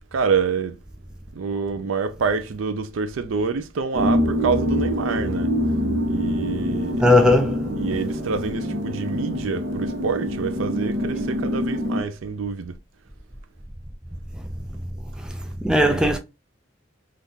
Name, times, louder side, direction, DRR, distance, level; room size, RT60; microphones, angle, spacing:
voice 1, 0.1-0.8 1.3-5.5 6.1-7.1 7.7-12.8 15.7-16.0, right 5 dB, 90° right, 0.4 m, -27 dB
sound 1, 3.9-12.0, equal, 65° right, 0.8 m, -25 dB
voice 2, 7.0-7.7 15.6-16.2, left 1 dB, 5° right, 0.3 m, -17 dB
3.5 x 2.4 x 2.7 m
head